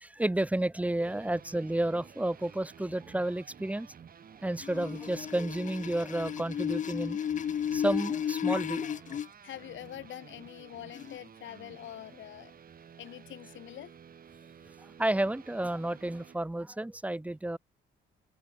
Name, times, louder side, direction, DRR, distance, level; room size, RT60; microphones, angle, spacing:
voice 1, 0.0-3.9 4.4-7.2 7.7-9.2 14.8-17.6, right 1 dB, 5° right, 0.7 m, -31 dB
sound 1, 1.0-16.4, right 7 dB, 45° right, 1.6 m, -53 dB
sound 2, 4.6-9.3 10.9-11.2, left 9 dB, 40° left, 0.4 m, -33 dB
voice 2, 9.4-12.5 13.0-13.9, left 12 dB, 75° left, 1.5 m, -45 dB
cardioid pair, 90°, 20 cm